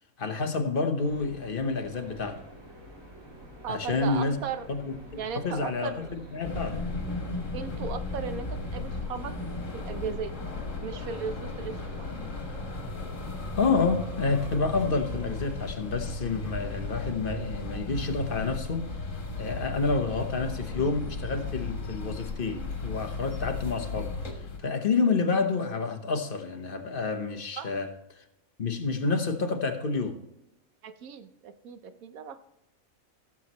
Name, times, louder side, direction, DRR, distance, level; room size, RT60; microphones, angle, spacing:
voice 1, 0.2-2.4 3.7-4.4 4.7-4.9 5.3-6.9 13.6-18.9 19.4-24.1 24.6-27.9 28.2-28.3 28.6-30.2, left 4 dB, 40° left, 6 dB, 1.2 m, -29 dB
sound 1, 1.0-15.4, equal, 70° right, 3.5 m, -48 dB
voice 2, 3.6-4.7 5.2-6.1 7.5-9.3 9.7-10.3 10.8-12.1 19.8-19.9 27.6-27.7 30.8-32.4, right 6 dB, 90° right, 10 dB, 1.2 m, -37 dB
sound 2, 6.4-24.6, left 3 dB, 65° left, 2.0 m, -35 dB
16.5 x 7.4 x 3.0 m, 0.86 s
omnidirectional pair, 1.5 m